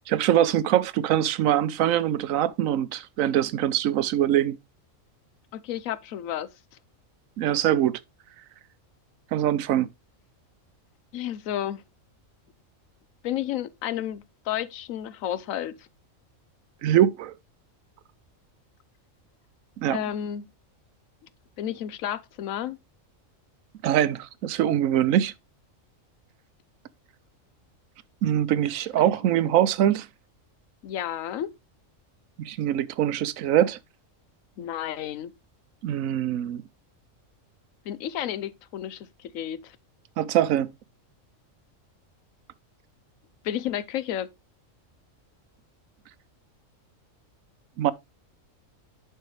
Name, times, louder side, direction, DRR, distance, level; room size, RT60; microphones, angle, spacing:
voice 1, 0.1-4.6 7.4-8.0 9.3-9.9 16.8-17.3 19.8-20.0 23.8-25.3 28.2-30.1 32.4-33.8 35.8-36.6 40.2-40.7 47.8-47.9, right 11 dB, 85° right, 1.0 m, -23 dB
voice 2, 5.5-6.5 11.1-11.8 13.2-15.9 19.9-20.5 21.6-22.8 30.8-31.5 34.6-35.3 37.9-39.8 43.4-44.3, left 11 dB, 90° left, 1.1 m, -31 dB
11.0 x 4.6 x 3.2 m
omnidirectional pair, 1.4 m